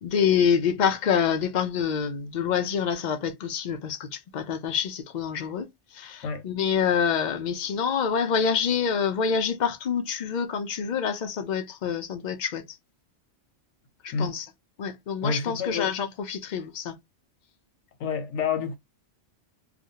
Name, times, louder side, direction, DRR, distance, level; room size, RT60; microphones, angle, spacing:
voice 1, 0.0-12.8 14.0-14.5 14.8-17.0, left 7 dB, 60° left, 0.5 m, -26 dB
voice 2, 15.2-15.9 18.0-18.8, left 5 dB, 90° left, 0.9 m, -28 dB
2.5 x 2.1 x 2.7 m
omnidirectional pair, 1.2 m